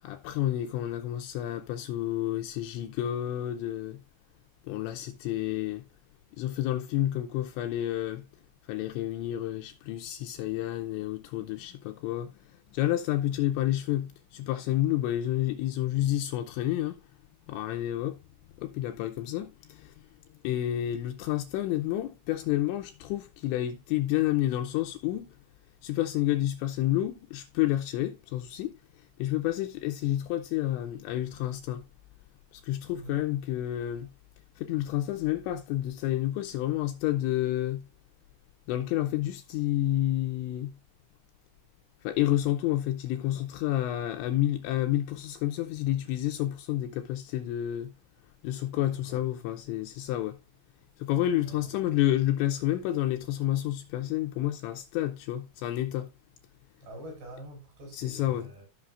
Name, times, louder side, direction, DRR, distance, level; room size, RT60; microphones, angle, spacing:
voice 1, 0.0-4.0 4.6-5.9 6.4-8.3 8.6-17.0 17.5-18.2 18.6-19.9 20.4-25.3 25.8-31.8 32.5-34.1 34.6-37.8 38.7-40.7 42.0-47.9 48.4-50.4 51.0-56.1 57.9-58.5, left 13 dB, 80° left, 2.7 m, -30 dB
voice 2, 48.8-49.2 51.3-51.7 56.8-58.7, right 1 dB, 60° right, 6.2 m, -45 dB
14.5 x 6.0 x 2.4 m
omnidirectional pair, 5.7 m